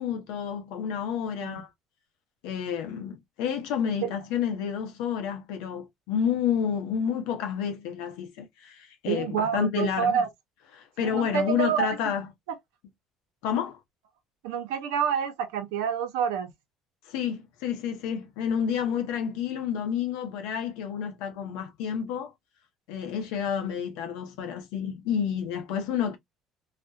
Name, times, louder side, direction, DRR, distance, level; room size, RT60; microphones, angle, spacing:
voice 1, 0.0-1.7 2.4-10.2 10.7-12.3 13.4-13.8 17.1-22.3 22.9-26.2, left 8 dB, 80° left, 0.7 m, -30 dB
voice 2, 9.1-10.3 11.0-12.0 14.4-16.5, right 8 dB, 90° right, 0.6 m, -27 dB
2.4 x 2.1 x 2.6 m
supercardioid pair, 85°, 0 cm